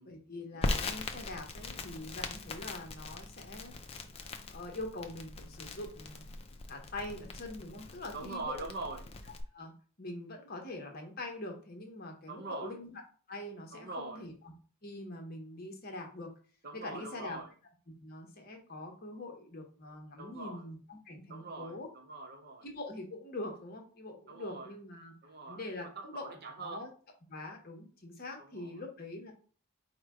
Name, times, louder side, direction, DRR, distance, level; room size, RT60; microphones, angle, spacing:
voice 1, 0.1-3.7 4.5-6.2 6.7-8.6 9.5-9.7 10.0-13.0 13.3-14.3 14.8-16.3 16.8-17.4 17.9-21.9 22.6-25.1 25.5-26.9 27.3-29.3, left 2 dB, 45° left, 0.9 m, -43 dB
Crackle, 0.6-9.4, left 2 dB, 25° left, 0.4 m, -40 dB
voice 2, 8.1-9.1 12.3-12.8 13.7-14.3 16.6-17.5 20.2-20.7 21.3-22.7 24.3-24.7 25.2-26.9 28.4-28.8, right 3 dB, 45° right, 0.5 m, -43 dB
4.8 x 2.2 x 4.7 m
head